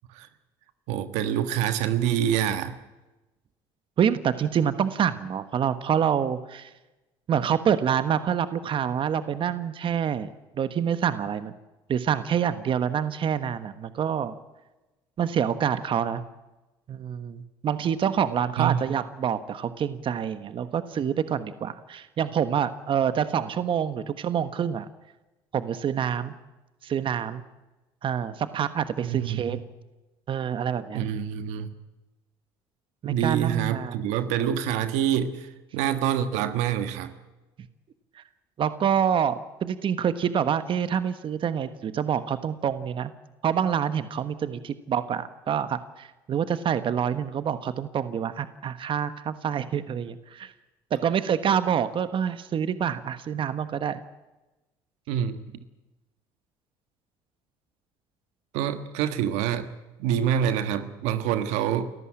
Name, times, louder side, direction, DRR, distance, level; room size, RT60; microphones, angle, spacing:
voice 1, 0.9-2.7 18.6-18.8 29.0-29.6 30.9-31.7 33.0-37.1 55.1-55.4 58.5-59.7 60.0-61.9, right 9 dB, 80° right, 10 dB, 1.5 m, -26 dB
voice 2, 4.0-6.7 7.3-10.3 10.5-11.5 11.9-14.3 15.2-16.2 16.9-24.9 25.5-26.3 26.8-27.4 28.0-29.6 30.3-31.0 33.0-34.0 38.1-38.2 38.6-43.1 43.4-50.5 50.9-54.0, right 8 dB, 50° right, 11 dB, 1.3 m, -27 dB
28.5 x 14.5 x 8.8 m, 1.1 s
supercardioid pair, 80°, 12 cm